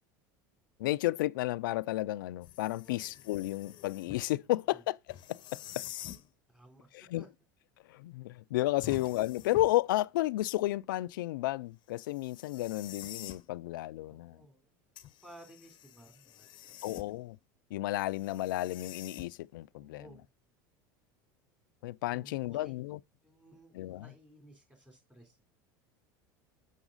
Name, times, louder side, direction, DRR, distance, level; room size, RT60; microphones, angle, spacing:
voice 1, 0.8-5.0 5.3-5.9 6.9-7.2 7.9-14.4 16.8-17.4 17.7-20.0 21.8-23.0 23.7-24.1, left 17 dB, 80° left, 0.4 m, -32 dB
sound 1, 2.4-4.3 5.1-6.3 8.8-9.9 12.1-13.5 15.0-17.3 18.1-19.6, left 13 dB, 45° left, 0.7 m, -48 dB
voice 2, 2.6-3.1 4.7-4.8 6.5-6.9 7.2-7.3 8.9-9.1 14.0-14.7 15.0-17.0 19.7-20.2 22.1-22.7 23.2-25.4, right 1 dB, 10° right, 3.4 m, -57 dB
7.2 x 5.8 x 3.9 m
hypercardioid pair, 95°, 11 cm